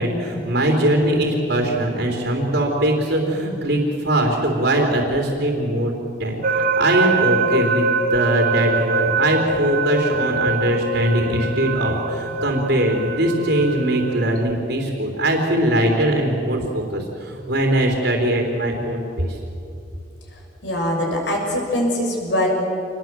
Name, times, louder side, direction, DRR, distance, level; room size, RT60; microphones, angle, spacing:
voice 1, 0.0-5.9 6.2-19.4, right 1 dB, 65° right, 0 dB, 3.5 m, -21 dB
sound 1, 6.4-14.4, right 3 dB, 45° right, 0.8 m, -23 dB
voice 2, 20.3-22.5, left 1 dB, 70° left, 0 dB, 6.1 m, -23 dB
26.5 x 20.5 x 7.6 m, 2.6 s
head